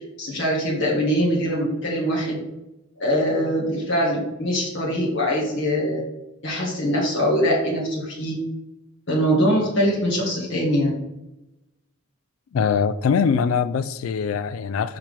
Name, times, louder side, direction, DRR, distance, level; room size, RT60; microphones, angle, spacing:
voice 1, 0.2-2.4 3.0-6.0 6.4-8.4 9.1-11.0, equal, 65° left, 1.7 m, -22 dB
voice 2, 12.5-15.0, left 6 dB, 80° left, 0.3 m, -22 dB
5.9 x 5.8 x 3.4 m
head